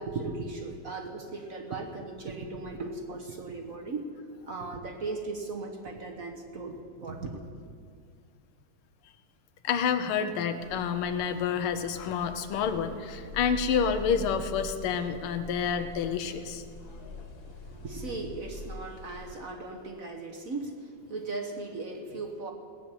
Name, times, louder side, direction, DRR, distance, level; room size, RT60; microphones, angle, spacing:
voice 1, 0.0-4.1 4.5-7.4 17.5-22.5, right 3 dB, 45° right, 3 dB, 1.3 m, -37 dB
voice 2, 9.6-16.6, left 7 dB, 80° left, 9 dB, 1.8 m, -29 dB
sound 1, 10.6-19.4, left 2 dB, 50° left, 1.8 m, -44 dB
17.0 x 7.3 x 9.0 m, 2.2 s
omnidirectional pair, 2.4 m